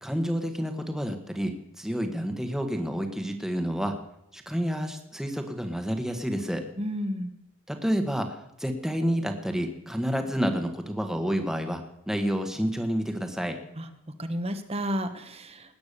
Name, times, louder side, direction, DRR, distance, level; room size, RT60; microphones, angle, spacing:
voice 1, 0.0-4.0 4.3-6.6 7.7-13.6, equal, ahead, 5 dB, 1.5 m, -29 dB
voice 2, 6.8-7.3 13.8-13.9 14.2-15.8, equal, 30° right, 8 dB, 1.3 m, -31 dB
19.5 x 9.4 x 6.8 m, 0.81 s
head